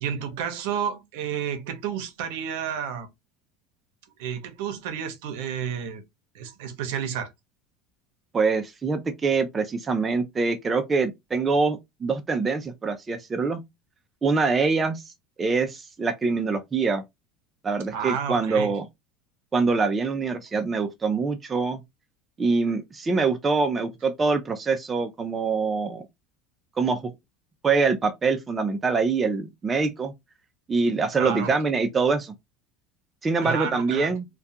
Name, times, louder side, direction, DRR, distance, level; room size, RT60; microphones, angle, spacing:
voice 1, 0.0-3.1 4.2-6.0 6.3-7.3 17.9-18.7 31.2-31.5 33.4-34.1, right 8 dB, 75° right, 0.7 m, -31 dB
voice 2, 8.3-13.6 14.2-15.0 15.4-17.0 17.6-18.8 19.5-21.8 22.4-26.0 26.8-27.0 27.6-30.1 30.7-32.3 33.2-34.2, right 4 dB, 20° right, 0.4 m, -24 dB
2.3 x 2.2 x 2.7 m
supercardioid pair, 120°, 0 cm